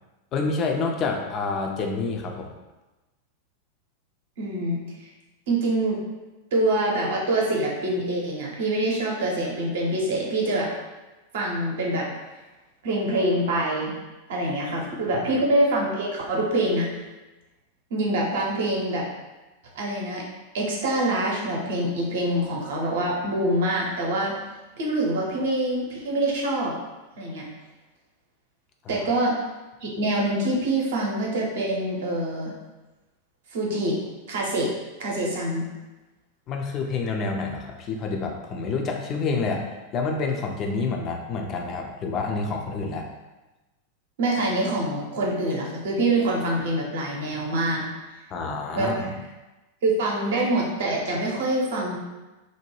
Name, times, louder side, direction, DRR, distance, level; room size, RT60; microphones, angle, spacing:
voice 1, 0.3-2.5 15.2-15.4 28.8-29.1 36.5-43.1 48.3-49.2, left 4 dB, 30° left, 2 dB, 0.4 m, -28 dB
voice 2, 4.4-4.8 5.5-6.0 6.5-10.7 11.3-12.1 12.8-13.9 14.3-17.0 17.9-19.1 19.7-20.2 20.5-24.3 24.8-26.7 27.2-27.5 28.9-29.3 29.8-32.5 33.5-34.0 34.3-34.7 35.0-35.7 44.2-47.8 48.7-49.1 49.8-52.0, right 1 dB, 55° right, -2 dB, 0.7 m, -25 dB
2.7 x 2.2 x 3.1 m, 1.1 s
figure-of-eight pair, 90°, 0 cm